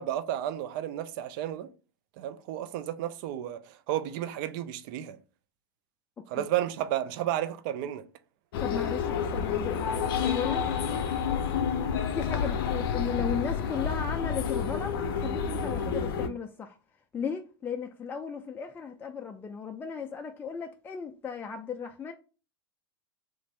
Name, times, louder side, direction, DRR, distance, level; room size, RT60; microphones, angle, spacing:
voice 1, 0.0-1.7 2.2-5.2 6.3-8.1, right 12 dB, 55° right, 0.5 m, -32 dB
sound 1, 8.5-16.3, left 7 dB, 65° left, 0.6 m, -29 dB
voice 2, 8.6-10.7 12.1-16.8 17.1-22.1, left 6 dB, 15° left, 0.3 m, -36 dB
3.1 x 2.5 x 3.2 m
hypercardioid pair, 90°, 13 cm